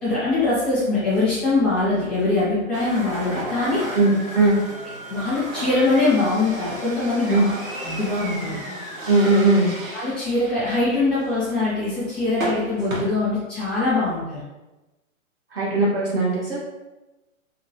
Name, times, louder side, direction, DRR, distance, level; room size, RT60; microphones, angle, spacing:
voice 1, 0.0-4.0 5.1-7.5 7.8-8.6 9.9-14.4, left 3 dB, ahead, -12 dB, 0.4 m, -22 dB
sound 1, 2.7-13.0, right 1 dB, 80° right, 1.3 m, -34 dB
voice 2, 3.9-4.6 7.3-7.5 9.1-9.7 15.5-16.7, right 2 dB, 45° right, -5 dB, 0.7 m, -19 dB
3.0 x 2.6 x 2.9 m, 1.1 s
hypercardioid pair, 145°, 41 cm